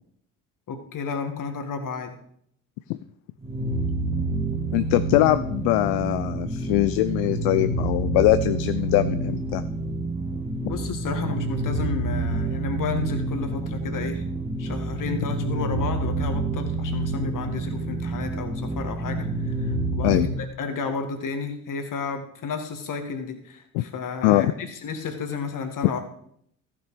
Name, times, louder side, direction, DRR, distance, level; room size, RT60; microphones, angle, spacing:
voice 1, 0.7-2.2 10.6-14.2 14.6-20.3 20.6-26.0, left 5 dB, 45° left, 7 dB, 1.9 m, -32 dB
sound 1, 3.4-20.4, right 2 dB, 15° right, 1.8 m, -28 dB
voice 2, 4.7-9.6 20.0-20.3 23.7-23.8 24.2-24.5, left 16 dB, 60° left, 13 dB, 0.6 m, -22 dB
14.5 x 6.3 x 4.9 m, 0.69 s
hypercardioid pair, 55°, 44 cm